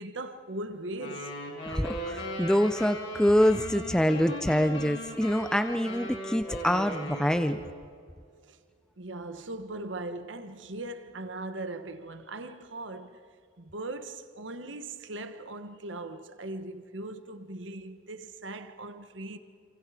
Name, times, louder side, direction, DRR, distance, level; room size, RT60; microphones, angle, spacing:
voice 1, 0.0-1.3 8.5-8.6 9.0-13.3 13.6-19.4, right 2 dB, 75° right, 1.3 m, -39 dB
sound 1, 1.0-7.8, equal, 75° left, 6.3 m, -38 dB
voice 2, 1.7-7.6, equal, 5° left, 0.5 m, -25 dB
27.5 x 27.5 x 5.0 m
head